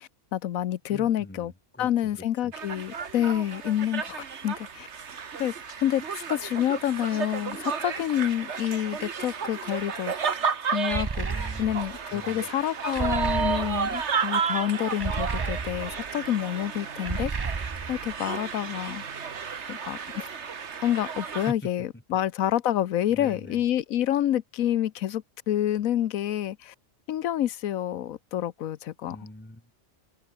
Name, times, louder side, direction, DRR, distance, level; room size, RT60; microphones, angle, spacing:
voice 1, 0.0-1.5 1.8-4.9 5.4-5.5 5.8-6.0 6.3-10.1 10.7-11.3 11.6-17.5 17.9-19.0 19.7-20.3 20.8-26.7 27.1-29.2, left 11 dB, 90° left, 1.2 m, -28 dB
voice 2, 0.9-2.5 11.3-11.8 12.1-12.5 13.3-13.8 21.5-22.0 23.1-23.6 29.1-29.7, left 1 dB, 10° left, 2.1 m, -43 dB
sound 1, 2.5-21.5, right 6 dB, 60° right, 1.7 m, -32 dB
sound 2, 10.9-12.0 12.9-14.0 15.0-16.1 17.0-18.1, right 4 dB, 35° right, 0.4 m, -32 dB
omnidirectional pair, 1.4 m